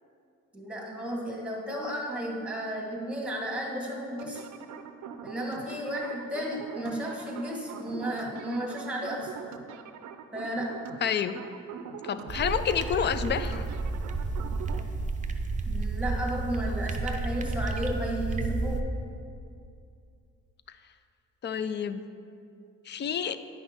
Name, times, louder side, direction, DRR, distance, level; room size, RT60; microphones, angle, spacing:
voice 1, 0.5-4.4 5.2-9.3 10.3-10.9 15.6-19.0, equal, 5° right, -1 dB, 1.4 m, -33 dB
sound 1, 4.2-14.8, right 7 dB, 70° right, 0.5 m, -43 dB
voice 2, 11.0-11.4 12.0-13.7 21.4-22.0 22.9-23.4, left 8 dB, 35° left, 12 dB, 0.4 m, -29 dB
sound 2, 12.3-18.8, right 3 dB, 25° right, 0.6 m, -31 dB
9.6 x 5.7 x 3.5 m, 2.4 s
cardioid pair, 90°, 30 cm